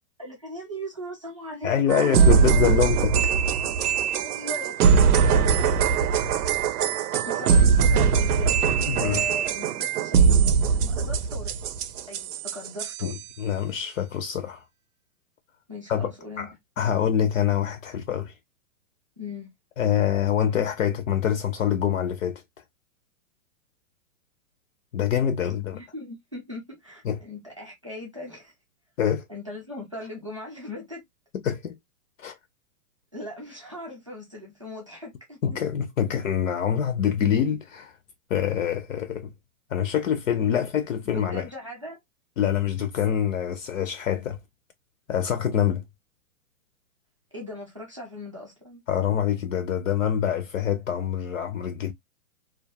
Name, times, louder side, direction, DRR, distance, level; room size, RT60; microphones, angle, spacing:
voice 1, 0.2-2.7 4.2-6.1 7.3-8.6 9.0-11.5 12.1-13.1 15.7-16.5 19.2-19.5 25.7-28.5 29.3-31.0 33.1-35.4 40.5-40.6 41.0-42.0 47.3-48.8, left 1 dB, 25° right, 0.4 m, -39 dB
voice 2, 1.6-3.3 8.9-9.2 13.0-14.6 15.9-16.1 16.4-18.3 19.8-22.4 24.9-25.8 27.1-27.2 29.0-29.2 31.4-31.8 32.2-32.4 35.4-37.9 38.3-39.3 39.7-41.5 42.4-44.4 45.1-45.9 48.9-51.9, left 9 dB, 60° left, 0.5 m, -25 dB
sound 1, 1.9-13.2, right 6 dB, 85° right, 0.6 m, -21 dB
2.3 x 2.1 x 2.6 m
hypercardioid pair, 175°, 44 cm